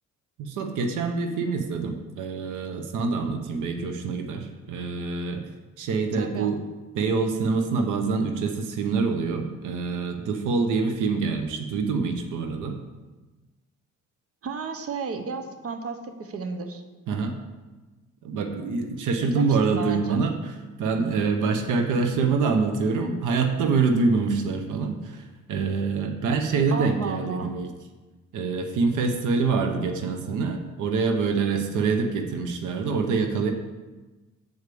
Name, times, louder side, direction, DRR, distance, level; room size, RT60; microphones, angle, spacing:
voice 1, 0.4-5.4 5.8-6.6 6.9-12.8 17.1-17.3 18.2-20.5 20.8-27.7 28.3-33.5, right 4 dB, 85° right, 5 dB, 0.9 m, -25 dB
voice 2, 6.2-6.5 14.4-16.8 19.2-20.2 26.7-27.5, right 4 dB, 50° right, 7 dB, 0.9 m, -33 dB
8.1 x 4.8 x 6.8 m, 1.2 s
cardioid pair, 90°, 30 cm